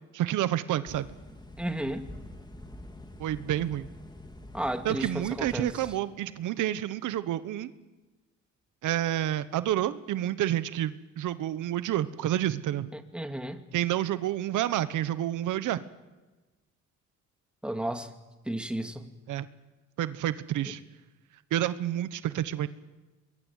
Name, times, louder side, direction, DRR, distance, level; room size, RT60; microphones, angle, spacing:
voice 1, 0.1-1.1 3.2-3.9 4.8-7.7 8.8-12.9 13.7-15.8 19.3-19.5 20.0-20.8 21.5-22.7, right 12 dB, 80° right, 13 dB, 1.1 m, -29 dB
sound 1, 0.9-5.9, left 1 dB, 15° left, 2.7 m, -46 dB
voice 2, 1.6-2.0 4.5-5.7 12.9-13.6 17.6-18.1 18.5-19.1, right 1 dB, 5° right, 6 dB, 2.4 m, -33 dB
24.0 x 22.0 x 9.1 m, 1.2 s
cardioid pair, 90°, 30 cm